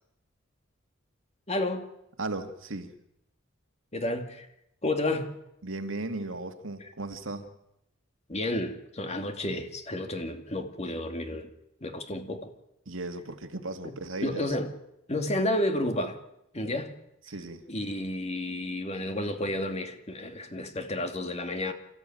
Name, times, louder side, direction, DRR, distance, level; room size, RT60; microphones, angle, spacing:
voice 1, 1.5-1.9 3.9-4.5 4.8-5.3 8.3-11.5 11.8-12.5 13.8-13.9 14.2-14.7 15.1-16.2 16.5-16.9 17.7-21.7, left 1 dB, 35° left, 2.4 m, -31 dB
voice 2, 2.2-2.9 5.6-7.5 12.9-14.6 17.3-17.6, right 2 dB, 75° right, 2.2 m, -36 dB
27.5 x 15.0 x 9.2 m
head